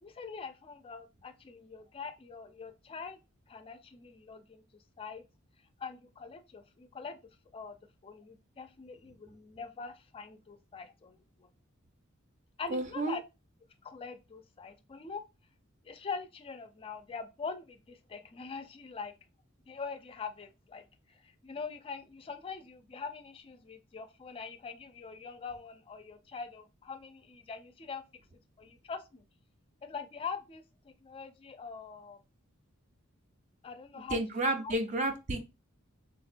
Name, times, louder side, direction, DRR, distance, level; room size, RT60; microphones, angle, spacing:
voice 1, 0.0-3.2 3.5-4.6 5.0-5.2 5.8-7.2 7.5-7.8 8.0-11.5 12.6-13.2 13.8-15.2 15.8-19.1 19.7-28.0 28.6-29.2 29.8-32.2 33.6-34.2 34.6-34.7, left 5 dB, 25° left, 0.3 m, -43 dB
voice 2, 12.7-13.2 34.1-35.4, right 2 dB, 35° right, 0.4 m, -31 dB
3.3 x 2.1 x 2.5 m
head